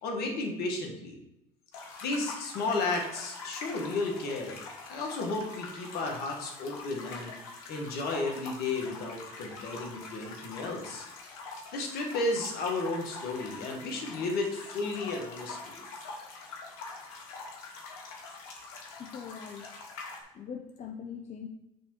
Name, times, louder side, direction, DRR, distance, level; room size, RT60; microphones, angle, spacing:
voice 1, 0.0-1.2 2.0-7.3 7.7-11.0 11.7-15.8, left 3 dB, 60° left, 2 dB, 1.6 m, -33 dB
sound 1, 1.7-20.2, left 3 dB, 80° left, 1.2 m, -44 dB
voice 2, 19.0-19.7 20.3-21.5, left 7 dB, 40° left, 3 dB, 0.6 m, -41 dB
6.1 x 3.5 x 5.4 m, 0.87 s
hypercardioid pair, 85°, 18 cm